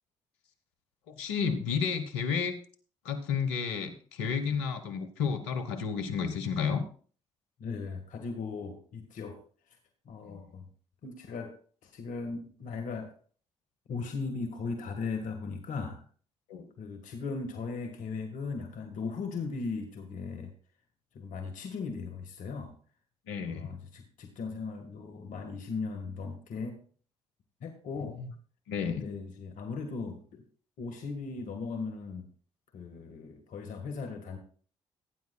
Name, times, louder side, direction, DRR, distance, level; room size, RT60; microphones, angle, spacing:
voice 1, 1.1-2.6 3.0-6.8 10.2-10.4 16.5-16.7 23.3-23.7 28.7-29.0, left 6 dB, 90° left, 7 dB, 1.2 m, -31 dB
voice 2, 7.6-9.4 9.7-9.8 10.0-10.7 11.0-11.5 11.8-13.1 13.9-16.0 16.8-20.5 21.1-22.7 23.4-26.8 27.6-28.2 28.8-30.2 30.8-32.3 32.7-34.4, left 4 dB, 70° left, 5 dB, 1.7 m, -38 dB
17.5 x 9.4 x 2.3 m, 0.43 s
hypercardioid pair, 50°, 14 cm